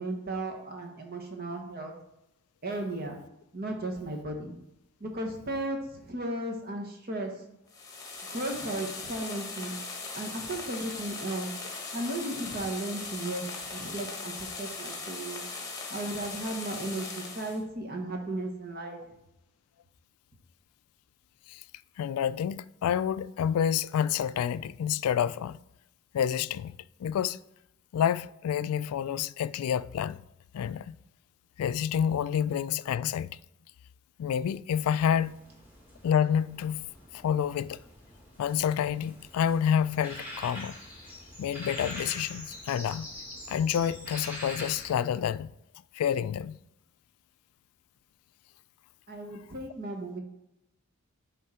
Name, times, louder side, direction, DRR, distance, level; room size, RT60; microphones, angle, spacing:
voice 1, 0.0-1.9 2.6-3.2 3.5-4.6 5.0-7.3 8.3-9.7 10.1-11.5 11.9-13.4 13.7-15.4 15.9-17.1 17.3-19.0 49.1-50.2, right 1 dB, 45° right, 1.2 m, -35 dB
sound 1, 7.7-17.6, left 4 dB, 15° left, 1.2 m, -39 dB
voice 2, 22.0-25.6 26.1-26.7 27.0-27.4 27.9-30.2 30.5-31.0 31.6-33.4 34.2-35.3 36.0-36.9 37.2-37.8 38.4-40.8 41.4-43.1 43.5-45.5 45.9-46.6, left 8 dB, 90° left, 0.3 m, -28 dB
sound 2, 34.7-45.0, left 1 dB, 10° right, 1.8 m, -44 dB
10.0 x 3.8 x 4.3 m
head